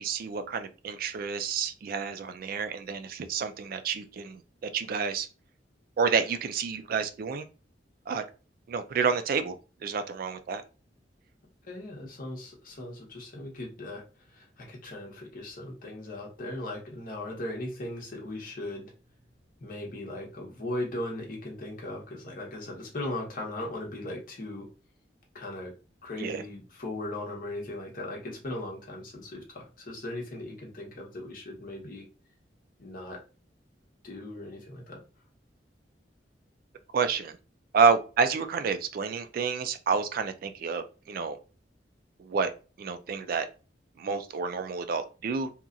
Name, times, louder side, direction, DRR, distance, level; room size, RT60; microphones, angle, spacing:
voice 1, 0.0-5.3 6.0-7.5 8.1-8.2 8.7-9.5 9.8-10.6 26.2-26.4 36.9-37.4 37.7-41.4 42.2-42.5 42.8-43.5 44.0-45.5, right 5 dB, 55° right, 10 dB, 0.3 m, -29 dB
voice 2, 11.6-14.0 14.3-18.9 19.6-24.7 25.3-25.7 26.0-32.0 32.8-33.2 34.0-35.0, left 1 dB, 55° left, -1 dB, 0.9 m, -38 dB
2.9 x 2.3 x 2.5 m, 0.34 s
head